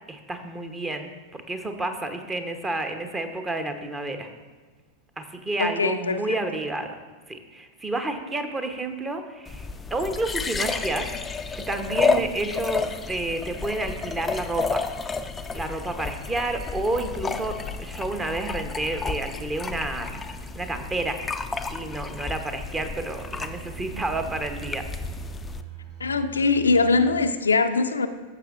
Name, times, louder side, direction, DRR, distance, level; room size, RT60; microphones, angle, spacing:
voice 1, 0.1-4.3 5.2-7.0 7.3-14.9 15.5-20.2 20.5-21.2 21.6-24.9, right 2 dB, 15° right, 7 dB, 0.9 m, -30 dB
voice 2, 5.6-6.2 26.0-28.1, left 4 dB, 75° left, 8 dB, 0.4 m, -22 dB
sound 1, 9.5-25.6, left 4 dB, 15° left, 0.4 m, -31 dB
sound 2, 16.4-27.3, right 11 dB, 45° right, 1.5 m, -45 dB
15.0 x 7.2 x 2.5 m, 1.4 s
figure-of-eight pair, 90°, 0 cm